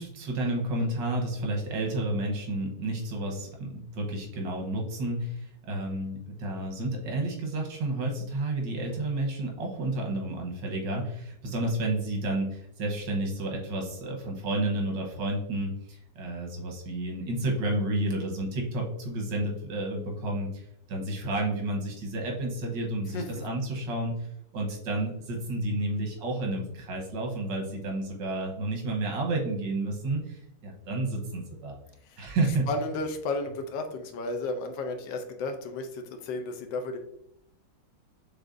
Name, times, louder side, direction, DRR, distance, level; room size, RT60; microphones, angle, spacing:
voice 1, 0.0-24.1 24.5-31.8 32.2-32.7, right 2 dB, 85° right, 0 dB, 1.7 m, -31 dB
voice 2, 32.7-37.0, left 3 dB, 90° left, 5 dB, 1.3 m, -33 dB
6.2 x 3.3 x 2.5 m, 0.76 s
omnidirectional pair, 1.9 m